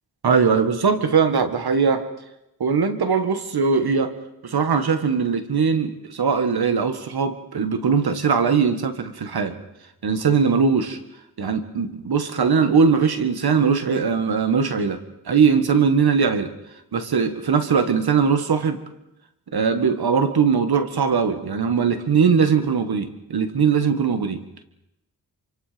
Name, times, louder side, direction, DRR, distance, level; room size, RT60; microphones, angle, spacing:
voice 1, 0.2-2.1 2.6-4.1 4.4-9.6 10.0-11.0 11.4-16.5 16.9-18.8 19.5-24.4, right 5 dB, 70° right, 8 dB, 1.9 m, -20 dB
27.5 x 26.0 x 5.3 m, 0.88 s
wide cardioid pair, 95°, 39 cm